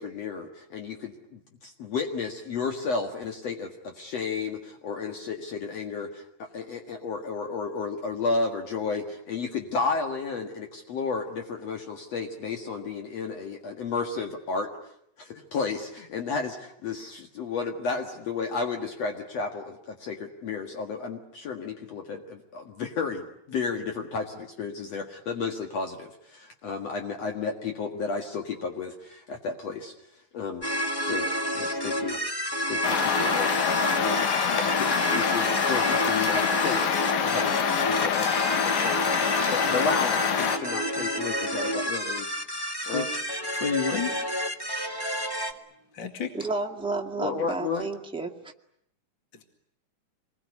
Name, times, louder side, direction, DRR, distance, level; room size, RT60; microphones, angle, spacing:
voice 1, 0.0-14.7 15.2-29.9 30.3-30.7 31.0-31.3 31.5-32.2 32.7-33.5 34.0-34.3 34.6-38.3 38.6-38.9 39.5-42.3 42.9-43.1 47.2-47.9, left 4 dB, 60° left, 3 dB, 2.8 m, -32 dB
sound 1, 30.6-45.5, equal, 15° left, 0.8 m, -29 dB
sound 2, 32.8-40.6, left 7 dB, 85° left, 3.1 m, -26 dB
voice 2, 43.5-44.1 45.9-46.3, left 5 dB, 40° left, 5 dB, 2.7 m, -29 dB
voice 3, 46.3-48.5, right 3 dB, ahead, 2 dB, 1.2 m, -31 dB
27.0 x 21.5 x 9.8 m, 0.74 s
omnidirectional pair, 3.5 m